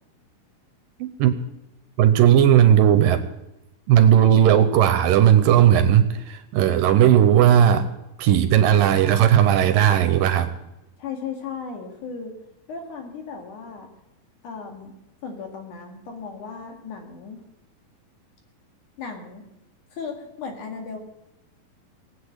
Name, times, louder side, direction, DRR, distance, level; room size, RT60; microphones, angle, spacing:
voice 1, 1.0-1.3 2.0-3.2 3.9-7.9 8.2-10.5, right 10 dB, 80° right, 10 dB, 2.4 m, -16 dB
voice 2, 11.0-12.3 12.7-13.9 14.4-14.9 15.2-17.4 19.0-19.4 19.9-21.0, left 5 dB, 60° left, 2 dB, 3.4 m, -36 dB
19.0 x 8.5 x 8.0 m, 0.92 s
omnidirectional pair, 4.3 m